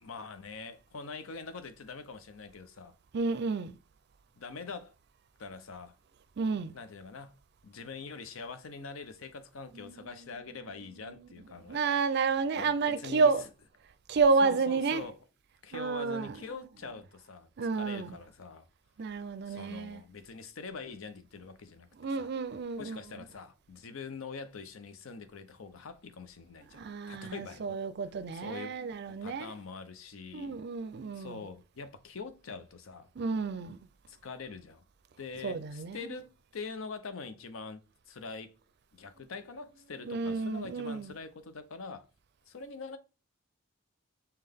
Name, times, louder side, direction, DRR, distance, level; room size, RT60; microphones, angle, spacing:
voice 1, 0.0-2.9 4.4-4.9 5.4-5.9 6.7-7.3 7.6-12.0 12.5-13.3 14.4-15.2 15.6-18.7 19.5-21.9 22.1-22.3 22.8-26.8 27.1-27.8 28.3-28.8 29.1-30.6 31.1-33.1 34.1-34.8 35.2-37.8 38.1-38.5 38.9-42.1 42.5-43.0, left 4 dB, 85° left, 0.6 m, -44 dB
voice 2, 3.1-3.7 6.4-6.8 9.7-10.1 10.6-11.3 11.7-13.5 14.1-15.0 15.7-16.4 17.6-18.2 19.0-20.0 22.0-23.0 26.7-29.6 30.3-31.4 33.2-33.8 35.4-36.1 40.0-41.1, right 4 dB, 55° right, 0.4 m, -31 dB
5.6 x 2.2 x 3.4 m
head